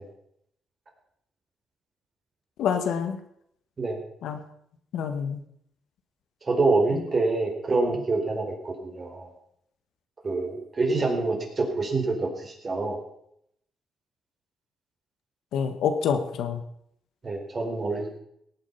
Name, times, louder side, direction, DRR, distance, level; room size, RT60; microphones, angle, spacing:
voice 1, 2.6-3.2 4.2-4.4 4.9-5.4 6.9-7.0 15.5-16.6, left 7 dB, 80° left, 7 dB, 1.7 m, -27 dB
voice 2, 6.5-9.3 10.2-13.0 17.2-18.2, right 3 dB, 35° right, 2 dB, 4.3 m, -26 dB
17.5 x 9.0 x 5.8 m, 0.72 s
cardioid pair, 90°, 0 cm